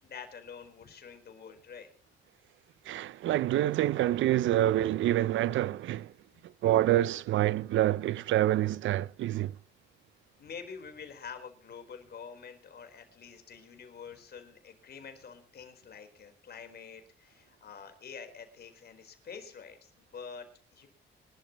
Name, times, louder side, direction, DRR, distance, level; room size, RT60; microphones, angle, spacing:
voice 1, 0.0-1.9 10.4-20.9, left 6 dB, 55° left, 4.4 m, -47 dB
voice 2, 2.9-6.1 6.6-9.5, right 13 dB, 75° right, 0.6 m, -27 dB
26.0 x 12.0 x 3.1 m
cardioid pair, 90°, 20 cm